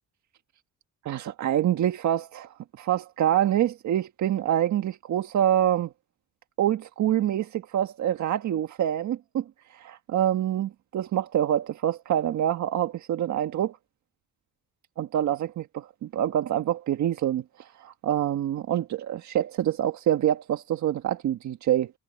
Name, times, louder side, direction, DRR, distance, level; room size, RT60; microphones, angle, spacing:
voice 1, 1.0-5.9 6.6-9.4 9.7-13.8 15.0-21.9, right 11 dB, 70° right, 1.6 m, -26 dB
cardioid pair, 90°, 30 cm